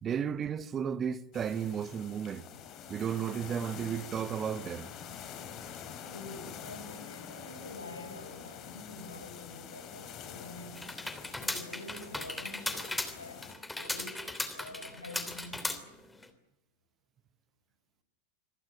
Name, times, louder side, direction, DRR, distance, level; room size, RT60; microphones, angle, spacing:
voice 1, 0.0-2.4 2.9-4.9, right 8 dB, 25° right, 1.1 m, -33 dB
sound 1, 1.3-13.6, left 8 dB, 35° left, 3.9 m, -46 dB
voice 2, 6.0-10.9 11.4-15.9, left 2 dB, 80° left, 5.0 m, -47 dB
sound 2, 10.7-16.3, left 2 dB, 5° left, 3.0 m, -37 dB
26.0 x 18.0 x 9.5 m
figure-of-eight pair, 90°, 0 cm